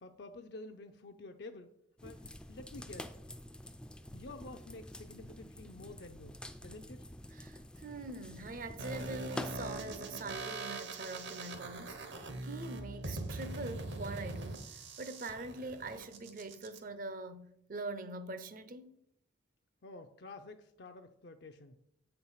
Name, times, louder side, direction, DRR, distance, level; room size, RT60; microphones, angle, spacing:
voice 1, 0.0-1.7 2.0-3.1 4.1-7.1 19.8-21.8, left 2 dB, 55° left, 0.5 m, -50 dB
sound 1, 2.0-10.0, left 1 dB, 5° left, 0.3 m, -48 dB
voice 2, 7.3-14.6 15.0-19.0, right 2 dB, 45° right, 0.6 m, -43 dB
sound 2, 8.8-16.8, right 2 dB, 65° right, 1.0 m, -42 dB
8.3 x 4.5 x 5.6 m
head